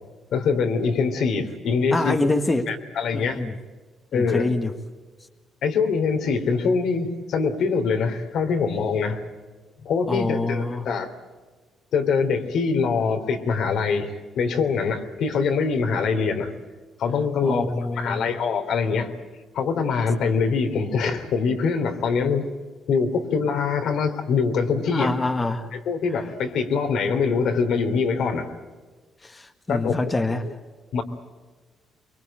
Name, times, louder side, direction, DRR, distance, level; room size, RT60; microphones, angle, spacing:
voice 1, 0.3-2.2 2.6-3.4 4.1-4.5 5.6-9.2 9.8-11.1 11.9-16.5 17.0-19.1 19.5-22.5 22.9-25.1 25.7-28.6 29.7-30.0 30.3-30.5 30.9-31.0, left 5 dB, 75° left, 5 dB, 3.2 m, -24 dB
voice 2, 1.9-2.7 3.1-3.5 4.1-4.7 10.1-10.9 17.4-18.3 24.9-25.7 29.2-30.5, left 2 dB, 20° left, 6 dB, 1.6 m, -25 dB
24.5 x 23.0 x 8.9 m, 1.3 s
cardioid pair, 90°, 0 cm